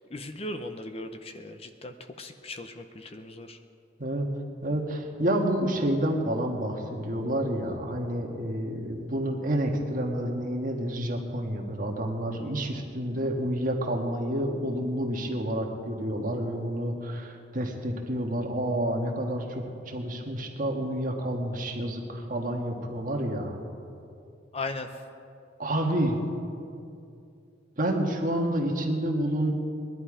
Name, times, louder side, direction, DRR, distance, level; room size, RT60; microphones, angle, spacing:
voice 1, 0.1-3.6 24.5-24.9, left 2 dB, 30° left, 7 dB, 0.6 m, -38 dB
voice 2, 4.6-23.6 25.6-26.2 27.8-29.5, right 1 dB, 45° right, 1 dB, 1.6 m, -29 dB
20.0 x 11.5 x 5.0 m, 2.6 s
head